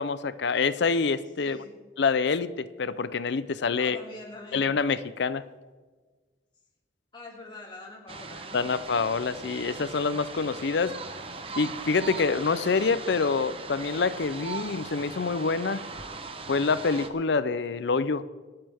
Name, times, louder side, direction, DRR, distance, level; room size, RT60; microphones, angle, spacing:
voice 1, 0.0-1.6 2.0-4.0 4.5-5.4 8.5-11.0 11.6-15.8 16.5-18.2, left 4 dB, 65° left, 15 dB, 0.5 m, -26 dB
voice 2, 1.4-1.7 3.8-4.7 7.1-8.6, left 2 dB, 25° left, -2 dB, 2.9 m, -44 dB
sound 1, 8.1-17.1, right 4 dB, 30° right, 0.9 m, -39 dB
25.5 x 8.8 x 3.5 m, 1.4 s
head